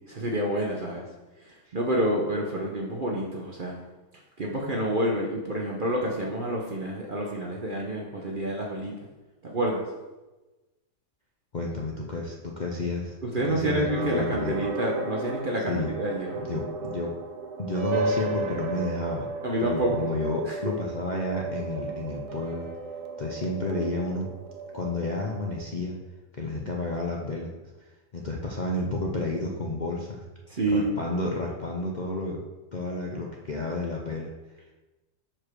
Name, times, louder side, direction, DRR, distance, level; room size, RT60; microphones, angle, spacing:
voice 1, 0.1-1.1 1.7-3.8 4.4-8.9 9.4-9.8 13.2-16.4 19.4-20.1 20.5-20.7 30.5-31.0, right 1 dB, 45° right, -1 dB, 0.7 m, -28 dB
voice 2, 11.5-14.6 15.7-15.9 16.4-17.1 17.6-19.3 19.6-22.7 23.2-24.3 24.7-25.9 26.3-27.5 28.1-30.2 30.7-32.4 32.7-34.3, left 2 dB, 70° left, -1 dB, 0.4 m, -31 dB
sound 1, 13.7-25.7, right 4 dB, 70° right, 1.2 m, -34 dB
5.0 x 4.5 x 6.1 m, 1.1 s
omnidirectional pair, 1.8 m